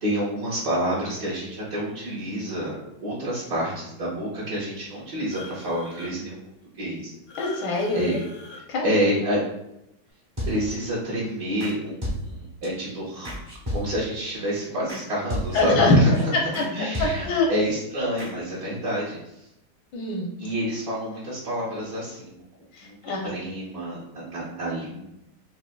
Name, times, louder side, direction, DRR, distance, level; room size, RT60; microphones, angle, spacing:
voice 1, 0.0-6.4 6.7-7.1 7.9-8.2 8.8-9.4 10.4-13.3 13.7-16.3 16.6-19.5 20.4-22.4 22.8-23.0 23.3-25.0, equal, 60° right, -8 dB, 1.6 m, -28 dB
sound 1, 5.3-6.1 7.3-8.6, left 3 dB, 65° left, 0.8 m, -43 dB
voice 2, 7.4-8.2 8.7-8.9 15.5-16.0 16.3-16.6 17.0-17.5 19.9-20.3 22.7-23.3, left 2 dB, 85° left, 0 dB, 1.4 m, -23 dB
sound 2, 10.4-10.9 11.6-11.7 12.0-12.7 13.2-14.2 14.9-15.0 15.3-15.8 16.1-16.2 16.5-16.7 16.9-17.5 18.2-18.3, equal, 25° right, 0.5 m, -32 dB
4.8 x 2.6 x 2.2 m, 0.84 s
omnidirectional pair, 1.8 m